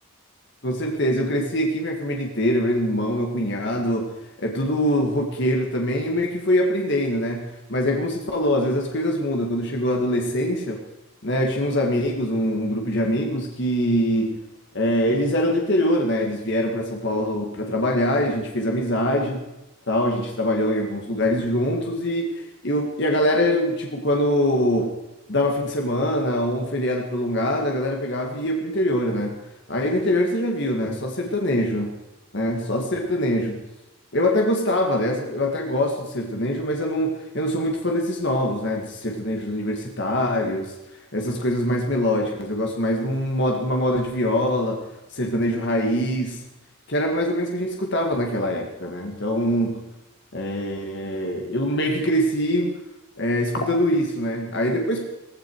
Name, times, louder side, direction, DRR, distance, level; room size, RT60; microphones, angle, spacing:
voice 1, 0.6-4.1 4.4-10.8 11.2-14.4 14.7-19.4 19.9-24.9 25.3-29.3 29.7-31.9 32.3-33.6 34.1-40.7 41.1-44.9 45.1-46.4 46.9-49.9 50.3-52.8 53.2-55.0, equal, 55° left, 1 dB, 2.0 m, -23 dB
17.0 x 16.0 x 4.7 m, 0.97 s
head